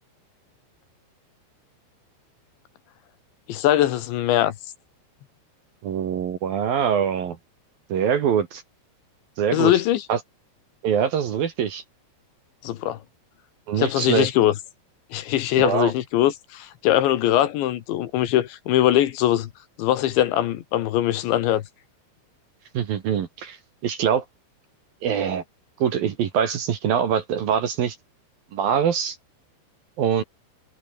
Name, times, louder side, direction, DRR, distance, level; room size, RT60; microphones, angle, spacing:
voice 1, 3.5-4.5 9.5-10.1 12.6-13.0 13.8-14.5 15.1-19.5 19.8-21.6, left 13 dB, 70° left, 3.5 m, -21 dB
voice 2, 5.8-7.4 7.9-8.6 9.4-9.7 10.1-10.2 10.8-11.8 13.7-14.3 15.6-15.9 22.7-23.6 23.8-24.2 25.0-25.4 25.8-28.0 28.5-29.2 30.0-30.2, right 8 dB, 55° right, 3.1 m, -23 dB
omnidirectional pair, 5.7 m